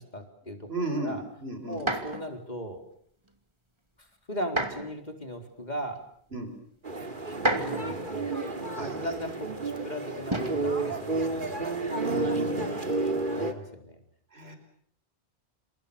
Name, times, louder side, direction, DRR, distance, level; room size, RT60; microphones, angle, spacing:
voice 1, 0.0-0.7 1.0-1.2 1.7-2.8 4.0-6.0 7.5-8.4 8.8-11.7 12.3-12.4 12.6-12.8 13.4-14.0 14.4-14.5, equal, 40° left, 5 dB, 4.3 m, -38 dB
voice 2, 0.7-1.8 6.3-6.5 8.8-9.1 12.0-12.8 14.3-14.6, right 2 dB, 65° right, 6 dB, 5.7 m, -34 dB
sound 1, 1.7-2.3 4.4-5.0 6.0-6.1 7.3-8.0 10.3-10.7 11.9-12.3, right 1 dB, 25° right, 2.6 m, -30 dB
sound 2, 6.8-13.5, right 2 dB, 50° right, 2.8 m, -31 dB
29.0 x 27.5 x 7.0 m, 0.64 s
omnidirectional pair, 1.1 m